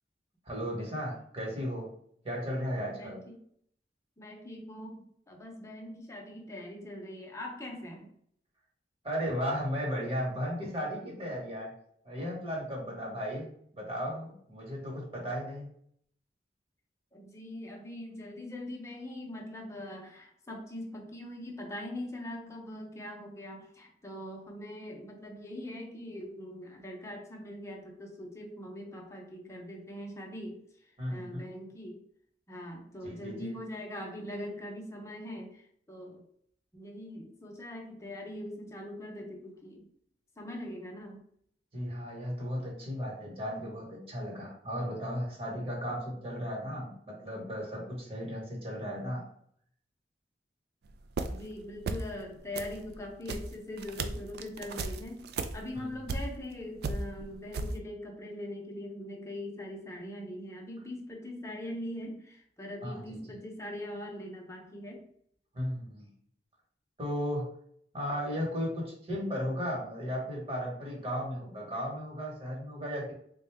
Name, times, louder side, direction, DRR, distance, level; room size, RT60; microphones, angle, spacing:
voice 1, 0.4-1.9 2.2-3.2 9.0-11.7 12.0-13.5 13.7-15.7 31.0-31.4 33.0-33.6 41.7-46.9 47.2-49.2 55.7-55.9 62.8-63.4 65.5-66.1 67.0-67.5 67.9-73.1, equal, 35° right, -2 dB, 1.2 m, -35 dB
voice 2, 2.9-3.4 4.2-8.1 17.1-30.6 31.1-32.0 32.5-36.2 36.7-39.9 40.4-41.2 51.3-55.3 55.5-65.1, left 1 dB, 15° left, 0 dB, 0.7 m, -42 dB
sound 1, 50.9-51.5 51.8-52.2 52.5-56.5 56.8-57.7, right 3 dB, 60° right, 0.3 m, -36 dB
3.8 x 2.2 x 3.4 m, 0.66 s
head